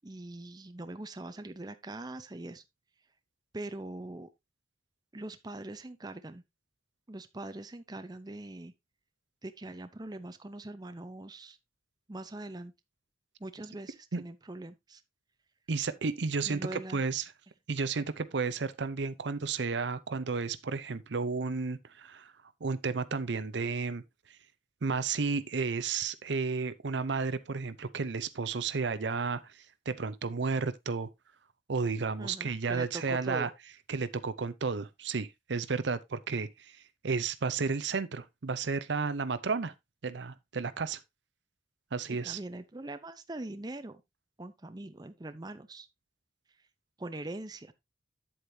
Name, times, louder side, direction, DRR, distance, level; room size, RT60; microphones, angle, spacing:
voice 1, 0.0-2.6 3.5-4.3 5.1-6.4 7.1-8.7 9.4-11.6 12.1-12.7 13.4-15.0 16.4-17.0 32.2-33.5 42.1-44.0 44.4-45.9 47.0-47.7, right 2 dB, 20° right, 0.6 m, -42 dB
voice 2, 15.7-17.2 17.7-22.3 22.6-24.0 24.8-31.1 31.7-33.5 33.9-39.7 40.0-41.0 41.9-42.4, right 4 dB, 70° right, 0.6 m, -32 dB
8.8 x 8.0 x 2.7 m
head